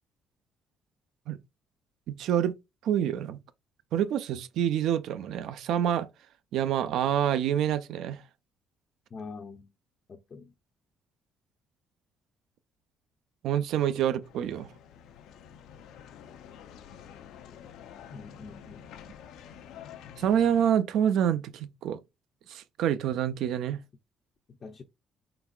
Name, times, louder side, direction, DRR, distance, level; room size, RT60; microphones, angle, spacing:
voice 1, 2.1-2.5 2.8-3.4 3.9-6.1 6.5-8.2 13.4-14.7 20.2-22.0 22.5-23.8, right 9 dB, 75° right, 0.5 m, -27 dB
voice 2, 9.1-9.7 10.1-10.5 18.1-18.9 24.5-24.8, left 4 dB, 35° left, 0.5 m, -44 dB
sound 1, 14.2-20.7, left 8 dB, 85° left, 0.5 m, -48 dB
4.4 x 3.9 x 2.3 m
cardioid pair, 145°, 0 cm